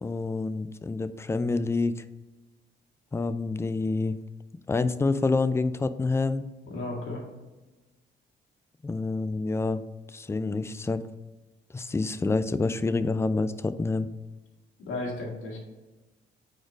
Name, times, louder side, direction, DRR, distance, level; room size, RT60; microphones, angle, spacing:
voice 1, 0.0-2.0 3.1-4.2 4.7-6.5 8.8-9.8 10.1-11.0 11.7-14.1, left 3 dB, 15° left, 12 dB, 0.3 m, -27 dB
voice 2, 6.6-7.2 14.8-15.6, left 2 dB, 85° left, -3 dB, 1.8 m, -34 dB
4.6 x 4.4 x 5.1 m, 1.1 s
cardioid pair, 90°, 20 cm